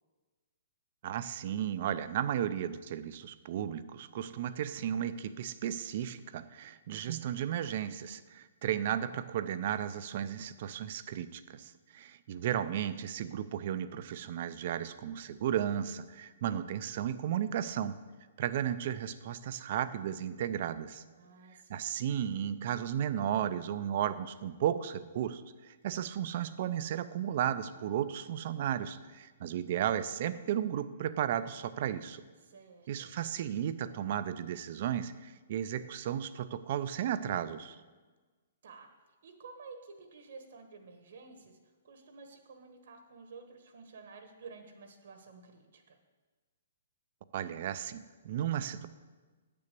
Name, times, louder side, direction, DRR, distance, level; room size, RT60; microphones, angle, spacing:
voice 1, 1.0-18.0 18.4-21.0 21.7-32.2 32.9-37.8 47.3-48.9, right 10 dB, 40° right, 14 dB, 0.5 m, -34 dB
voice 2, 21.2-21.9 32.4-33.1 38.6-38.9 39.2-41.6 41.8-46.0, right 4 dB, 65° right, 5 dB, 1.3 m, -52 dB
8.6 x 6.8 x 6.8 m, 1.3 s
hypercardioid pair, 170°, 0 cm